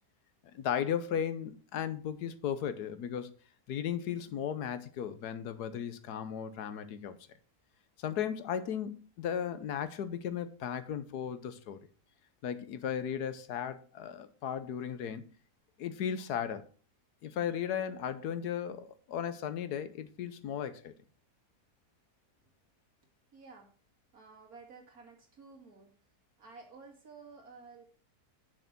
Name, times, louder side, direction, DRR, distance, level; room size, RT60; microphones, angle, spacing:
voice 1, 0.5-3.3 3.7-7.2 8.0-11.8 12.4-15.2 15.8-16.7 17.2-20.9, left 8 dB, 90° left, 1.4 m, -36 dB
voice 2, 23.3-23.7 24.1-26.0 26.4-27.8, right 4 dB, 70° right, 2.9 m, -53 dB
6.5 x 6.5 x 6.0 m
omnidirectional pair, 1.6 m